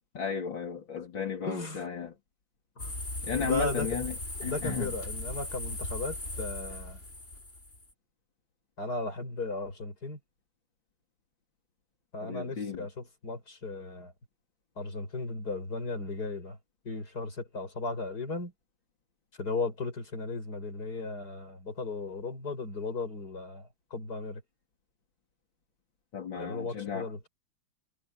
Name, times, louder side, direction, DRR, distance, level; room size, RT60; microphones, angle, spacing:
voice 1, 0.2-2.2 3.2-4.2 4.4-4.9 12.2-12.9 26.1-27.1, left 6 dB, 70° left, 3.7 m, -34 dB
voice 2, 1.4-1.9 2.8-3.0 3.4-3.9 4.4-7.0 8.8-10.2 12.1-14.1 14.8-16.6 16.8-18.5 19.4-24.4 26.4-27.3, left 3 dB, 50° left, 5.9 m, -36 dB
sound 1, 2.8-7.9, left 2 dB, 35° left, 5.9 m, -38 dB
omnidirectional pair, 2.2 m